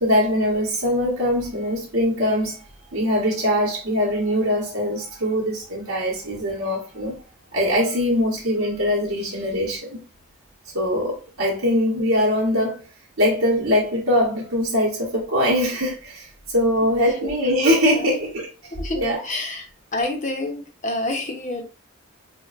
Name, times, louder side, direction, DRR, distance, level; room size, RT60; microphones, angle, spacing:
voice 1, 0.0-2.6 2.9-7.2 7.5-10.0 10.7-12.8 13.2-18.5 18.9-19.2, equal, 85° right, 1.0 m, -22 dB
voice 2, 18.8-19.7 19.9-21.6, left 2 dB, 35° left, 0.6 m, -28 dB
4.4 x 2.1 x 2.4 m
head